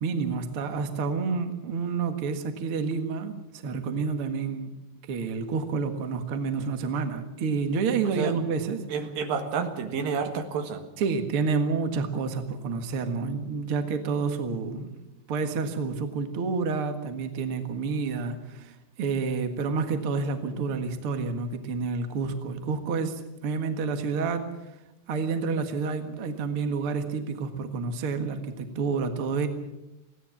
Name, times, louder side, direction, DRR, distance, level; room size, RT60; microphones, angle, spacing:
voice 1, 0.0-3.3 3.6-4.7 5.1-8.8 11.0-14.9 15.3-24.4 25.1-29.5, right 4 dB, 80° right, 7 dB, 1.2 m, -29 dB
voice 2, 8.9-10.8, right 6 dB, 60° right, 6 dB, 2.9 m, -29 dB
22.5 x 16.5 x 7.2 m, 0.95 s
omnidirectional pair, 5.3 m